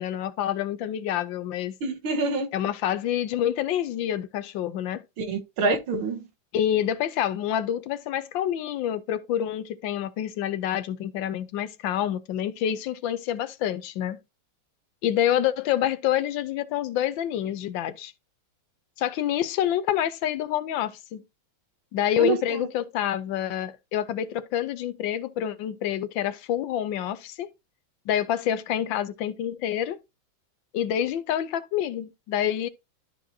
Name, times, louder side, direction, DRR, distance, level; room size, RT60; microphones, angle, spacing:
voice 1, 0.0-1.8 2.5-5.0 6.5-14.2 15.0-18.1 19.0-21.2 21.9-27.5 28.1-30.0 30.7-32.7, left 10 dB, 75° left, 1.3 m, -27 dB
voice 2, 1.8-2.5 5.2-6.3 22.2-22.6, right 3 dB, 85° right, 2.1 m, -26 dB
13.0 x 4.5 x 2.7 m
omnidirectional pair, 2.2 m